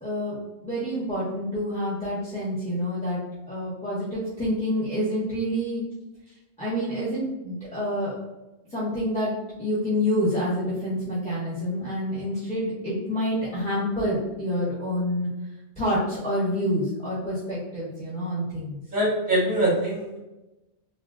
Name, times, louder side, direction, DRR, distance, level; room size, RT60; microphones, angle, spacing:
voice 1, 0.0-0.4 0.6-3.2 3.5-5.8 6.6-8.1 8.7-9.3 9.6-15.3 15.8-18.8, equal, 5° left, -11 dB, 0.7 m, -27 dB
voice 2, 18.9-20.2, right 1 dB, 45° right, -5 dB, 0.8 m, -23 dB
3.6 x 2.2 x 2.3 m, 1.0 s
omnidirectional pair, 1.2 m